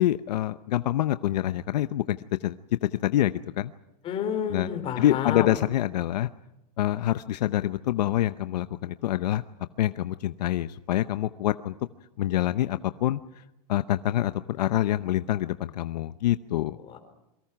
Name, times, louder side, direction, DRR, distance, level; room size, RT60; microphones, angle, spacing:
voice 1, 0.0-2.6 3.0-3.7 4.5-4.7 5.0-6.3 6.8-9.4 9.8-11.7 12.2-13.2 13.7-16.8, left 13 dB, 75° left, 12 dB, 0.8 m, -26 dB
voice 2, 4.0-5.6 16.9-17.0, left 8 dB, 25° left, 6 dB, 4.1 m, -30 dB
28.5 x 23.5 x 5.9 m, 0.88 s
supercardioid pair, 155°, 21 cm